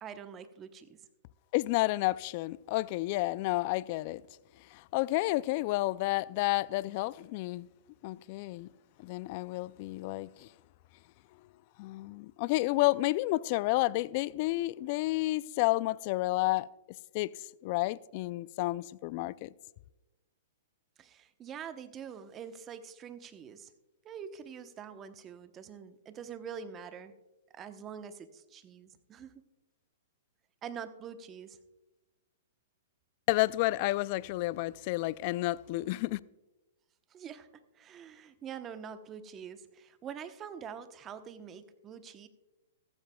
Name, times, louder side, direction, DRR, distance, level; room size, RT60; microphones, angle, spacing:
voice 1, 0.0-1.0 21.0-23.7 24.0-27.1 27.5-29.4 30.6-31.6 37.1-42.3, right 7 dB, 25° right, 0.9 m, -45 dB
voice 2, 1.5-4.2 4.7-7.7 8.0-8.7 9.0-10.5 11.8-16.7 17.1-17.3 17.6-19.5 33.3-36.2, left 19 dB, 45° left, 0.4 m, -30 dB
15.0 x 14.5 x 2.3 m
hypercardioid pair, 125°, 0 cm